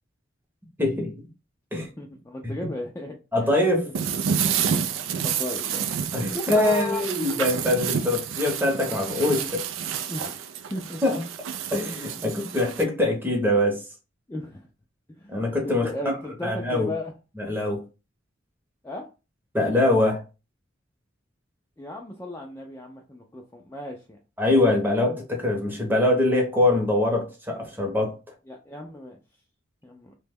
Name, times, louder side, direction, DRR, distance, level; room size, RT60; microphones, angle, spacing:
voice 1, 0.8-1.1 1.7-1.9 2.4-2.5 3.3-3.9 6.1-9.6 11.0-11.2 11.7-13.8 15.3-16.1 16.4-16.9 17.4-17.8 19.5-20.2 24.4-28.2, left 1 dB, 10° right, 1 dB, 0.7 m, -23 dB
voice 2, 2.0-3.5 5.2-6.0 6.3-7.5 10.1-10.4 10.7-11.0 12.4-12.5 14.3-14.7 15.2-17.1 18.8-19.1 21.8-24.2 28.5-29.2 29.8-30.2, left 2 dB, 15° left, 0 dB, 0.3 m, -35 dB
sound 1, 3.9-12.8, right 7 dB, 90° right, 0.4 m, -29 dB
2.9 x 2.1 x 3.4 m, 0.30 s
head